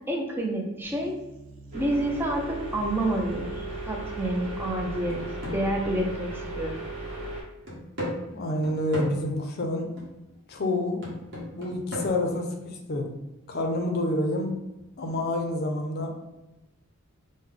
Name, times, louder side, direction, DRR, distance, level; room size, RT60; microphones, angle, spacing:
voice 1, 0.1-1.2 1.7-5.2 5.5-6.7, right 1 dB, 10° right, 0 dB, 0.4 m, -28 dB
sound 1, 0.8-7.3, equal, 85° right, 0.5 m, -47 dB
sound 2, 1.7-7.4, right 2 dB, 30° right, 1.2 m, -36 dB
sound 3, 4.8-6.7 7.0-7.1 7.7-9.3 10.0-10.2 11.0-12.1, left 1 dB, 50° right, 1.1 m, -37 dB
voice 2, 8.3-9.9 10.5-11.1 11.5-13.1 13.5-14.6 15.0-16.1, left 1 dB, 45° left, 3 dB, 0.5 m, -28 dB
3.3 x 2.1 x 3.6 m, 0.99 s
head